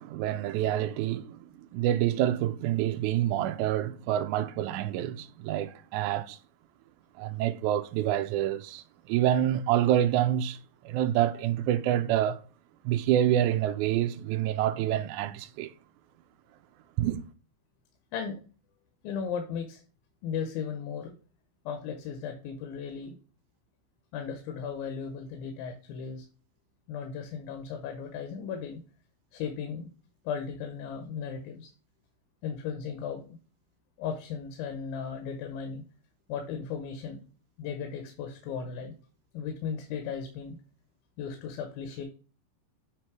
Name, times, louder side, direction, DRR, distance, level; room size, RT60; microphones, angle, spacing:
voice 1, 0.0-6.4 7.2-10.6 10.8-12.4 12.8-15.7 17.0-17.2, right 12 dB, 85° right, 1.7 m, -27 dB
voice 2, 19.0-19.8 20.2-21.1 21.7-23.2 24.1-26.3 26.9-28.8 29.3-29.9 30.3-31.7 32.4-33.4 34.0-35.8 36.3-37.2 37.6-38.9 39.3-40.6 41.2-42.0, left 6 dB, 85° left, 2.6 m, -36 dB
8.2 x 3.1 x 4.6 m
omnidirectional pair, 4.0 m